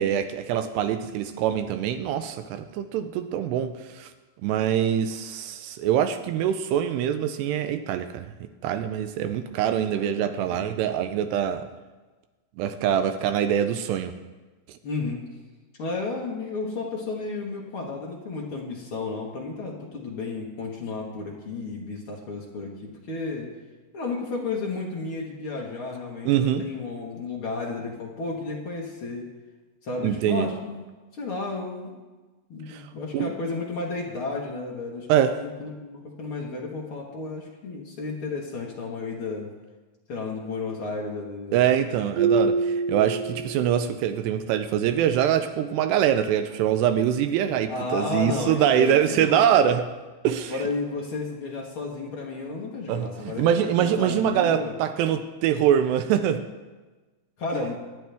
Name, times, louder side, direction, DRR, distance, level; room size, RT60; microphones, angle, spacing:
voice 1, 0.0-4.1 4.4-8.3 8.6-11.7 12.6-14.1 26.3-26.7 30.0-30.5 32.7-32.9 33.1-33.3 35.1-35.4 41.5-49.9 50.2-50.5 52.9-56.5, right 9 dB, 85° right, 9 dB, 2.7 m, -24 dB
voice 2, 14.8-15.2 15.8-23.5 23.9-29.3 29.8-30.8 31.1-32.0 32.5-39.5 40.1-41.7 47.7-49.7 50.5-54.7 57.4-57.8, left 3 dB, 90° left, -2 dB, 1.1 m, -32 dB
Marimba xylophone, 42.2-43.9, right 4 dB, 65° right, 2.8 m, -25 dB
25.0 x 9.3 x 3.5 m, 1.2 s
omnidirectional pair, 4.8 m